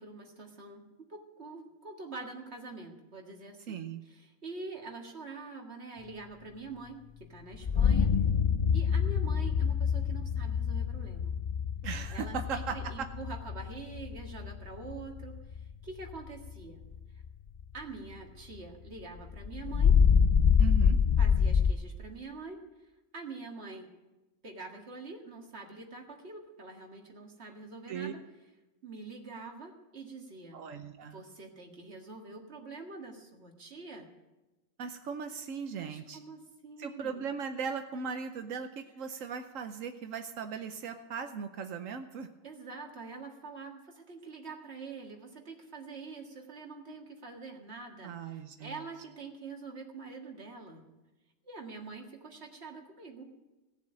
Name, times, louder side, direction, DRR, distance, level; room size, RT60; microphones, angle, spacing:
voice 1, 0.0-8.1 8.7-11.4 12.1-16.8 17.7-20.0 21.2-22.6 23.1-23.9 24.4-28.2 28.8-30.6 31.0-34.1 35.8-37.3 42.4-50.9 51.4-53.3, right 3 dB, 55° right, 2 dB, 2.1 m, -45 dB
voice 2, 3.7-4.0 11.8-13.1 20.6-21.0 27.9-28.1 30.5-31.2 34.8-36.2 36.8-42.3 48.0-48.8, right 6 dB, 80° right, 7 dB, 1.2 m, -38 dB
sound 1, 7.5-16.5 16.9-17.3 17.6-17.7 18.1-18.2 19.2-21.7, left 6 dB, 65° left, 0.3 m, -26 dB
17.5 x 7.3 x 8.8 m, 1.1 s
omnidirectional pair, 1.3 m